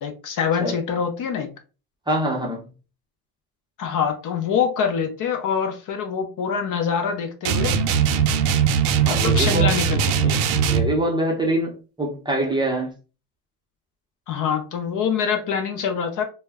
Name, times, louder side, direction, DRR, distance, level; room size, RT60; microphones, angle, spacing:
voice 1, 0.0-1.5 3.8-7.8 9.1-10.4 14.3-16.2, left 7 dB, 50° left, 0.6 m, -25 dB
voice 2, 2.1-2.6 9.1-9.8 10.7-12.9, right 1 dB, 10° right, 0.6 m, -24 dB
sound 1, 7.4-10.9, right 7 dB, 90° right, 0.5 m, -20 dB
2.1 x 2.1 x 3.4 m
supercardioid pair, 110°, 42 cm